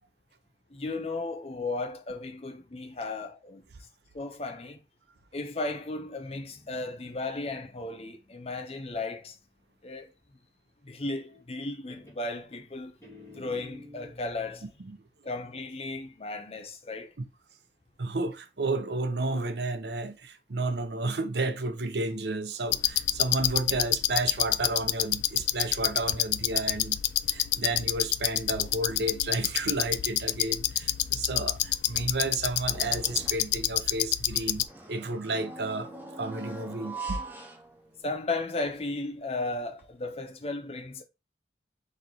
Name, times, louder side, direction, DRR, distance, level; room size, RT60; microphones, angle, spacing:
voice 1, 0.7-3.6 4.1-4.8 5.3-9.4 9.8-10.1 10.8-13.0 13.4-14.6 15.2-17.1 38.0-41.0, left 2 dB, 35° left, 0.7 m, -35 dB
Guitar, 6.1-9.7 11.3-11.6 11.9-14.8, left 2 dB, 15° left, 2.0 m, -53 dB
voice 2, 18.0-27.0 27.3-35.9 36.2-37.2, right 2 dB, 70° right, 0.7 m, -32 dB
sound 1, 22.7-34.7, left 13 dB, 85° left, 0.3 m, -28 dB
sound 2, 32.7-33.5 34.6-38.2 38.6-38.7 39.8-39.9, right 3 dB, 10° right, 0.9 m, -42 dB
4.2 x 3.1 x 3.7 m
head